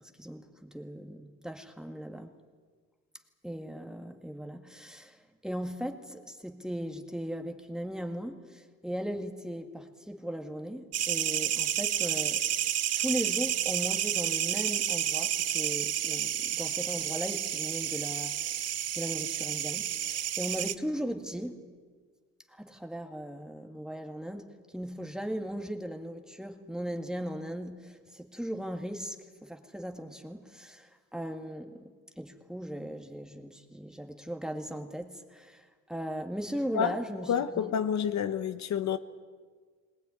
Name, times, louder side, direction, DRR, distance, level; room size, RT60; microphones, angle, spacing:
voice 1, 0.2-2.3 3.4-12.4 13.0-18.5 18.9-21.6 22.5-37.7, equal, ahead, 2.0 m, -38 dB
sound 1, 10.9-20.7, right 10 dB, 55° right, 0.8 m, -30 dB
voice 2, 37.3-39.0, left 8 dB, 65° left, 1.1 m, -29 dB
20.0 x 19.0 x 9.6 m
cardioid pair, 90°, 30 cm